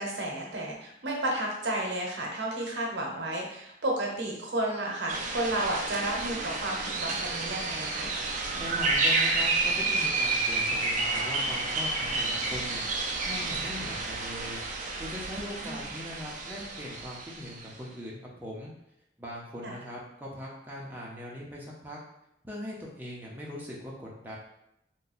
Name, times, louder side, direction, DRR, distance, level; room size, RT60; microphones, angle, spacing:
voice 1, 0.0-8.1 15.4-15.9 19.6-19.7, right 1 dB, 75° right, -1 dB, 0.9 m, -32 dB
sound 1, 5.1-17.6, right 3 dB, 45° right, 0.4 m, -30 dB
voice 2, 8.5-14.6 15.0-18.7 19.2-22.0 22.4-24.4, equal, 10° right, -4 dB, 0.7 m, -41 dB
2.7 x 2.2 x 4.0 m, 0.83 s
head